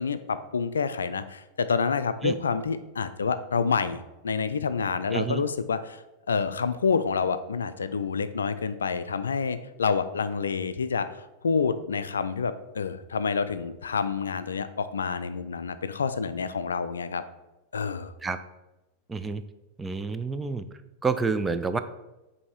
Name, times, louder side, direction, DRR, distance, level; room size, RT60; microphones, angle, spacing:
voice 1, 0.0-6.0 6.3-11.1 11.4-17.2 17.7-18.1, left 5 dB, 70° left, 12 dB, 0.3 m, -28 dB
voice 2, 5.1-5.4 18.2-18.4 19.1-19.4 19.8-20.6 21.0-21.8, right 4 dB, 10° right, 9 dB, 0.4 m, -28 dB
8.2 x 2.8 x 4.5 m, 1.0 s
figure-of-eight pair, 90°, 0 cm